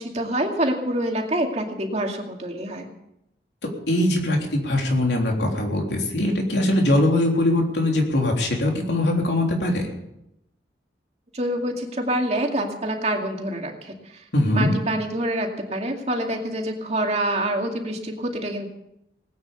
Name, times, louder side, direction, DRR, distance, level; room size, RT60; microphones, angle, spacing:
voice 1, 0.0-2.9 11.3-14.2 14.5-18.7, right 1 dB, 40° right, 2 dB, 2.3 m, -26 dB
voice 2, 3.9-9.8 14.3-14.7, left 1 dB, 75° left, 1 dB, 3.5 m, -21 dB
19.5 x 9.4 x 6.9 m, 0.83 s
head